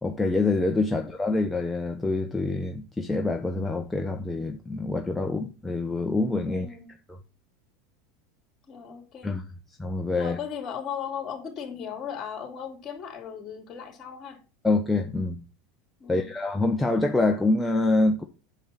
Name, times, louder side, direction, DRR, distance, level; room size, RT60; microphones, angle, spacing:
voice 1, 0.0-6.7 7.1-7.2 9.2-9.4 9.8-10.4 14.6-15.4 16.1-18.3, left 2 dB, 10° left, 0.9 m, -26 dB
voice 2, 6.5-6.9 8.7-9.3 10.1-14.4 16.0-16.3, left 7 dB, 35° left, 3.2 m, -37 dB
8.3 x 7.3 x 4.2 m
supercardioid pair, 115°, 0 cm